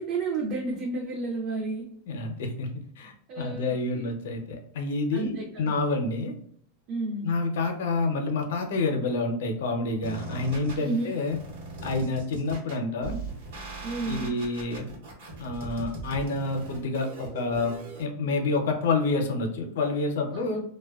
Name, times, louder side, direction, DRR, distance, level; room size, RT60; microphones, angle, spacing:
voice 1, 0.0-1.9 3.3-4.1 5.1-5.8 6.9-7.3 10.8-11.1 13.8-14.3 20.3-20.4, right 3 dB, 35° right, -2 dB, 0.4 m, -31 dB
voice 2, 2.1-6.3 7.2-11.4 11.8-13.2 14.0-14.9 15.4-20.6, left 3 dB, 80° left, 4 dB, 0.5 m, -28 dB
sound 1, 10.0-18.0, right 2 dB, 70° right, 0.8 m, -40 dB
2.6 x 2.1 x 2.3 m, 0.65 s
supercardioid pair, 155°, 0 cm